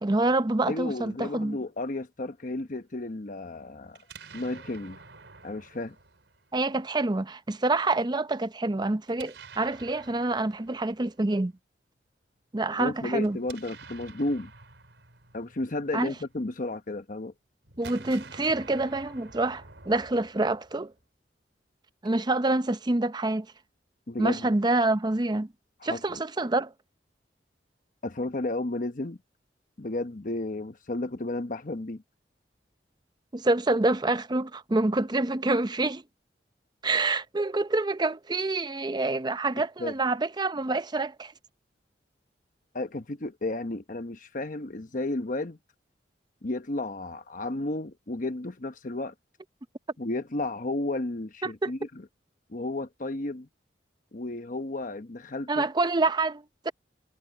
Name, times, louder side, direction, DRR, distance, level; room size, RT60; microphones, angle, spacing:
voice 1, 0.0-1.6 6.5-11.5 12.5-13.4 15.9-16.1 17.8-20.9 22.0-23.5 24.2-25.5 25.8-26.7 33.3-36.0 36.8-41.3 51.4-51.7 55.5-56.7, right 2 dB, 25° right, 0.6 m, -27 dB
voice 2, 0.7-4.0 4.3-5.0 5.4-5.9 12.8-14.5 15.3-17.3 24.1-24.5 25.8-26.2 28.0-29.2 29.8-32.0 39.8-39.9 42.7-45.6 46.4-49.1 50.0-52.1 52.5-53.5 54.1-55.6, left 2 dB, 45° left, 1.0 m, -33 dB
Explosion, 3.9-7.0 9.0-11.3 13.2-16.6 17.6-21.0, right 4 dB, 85° right, 4.5 m, -49 dB
head